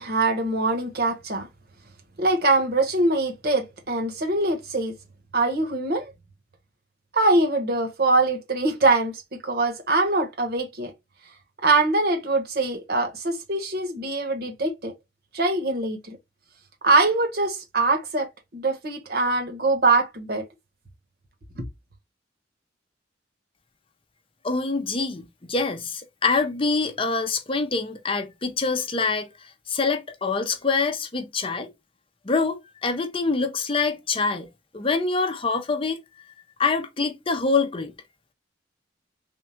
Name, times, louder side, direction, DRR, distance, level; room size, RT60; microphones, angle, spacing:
voice 1, 0.0-1.5 2.2-4.9 5.3-6.1 7.1-10.9 11.6-14.9 15.3-16.2 16.8-20.5 21.6-21.7, right 2 dB, 55° right, 1.2 m, -23 dB
voice 2, 24.4-31.7 32.2-36.0 36.6-37.9, left 4 dB, 30° left, 0.6 m, -25 dB
3.6 x 2.3 x 4.3 m
head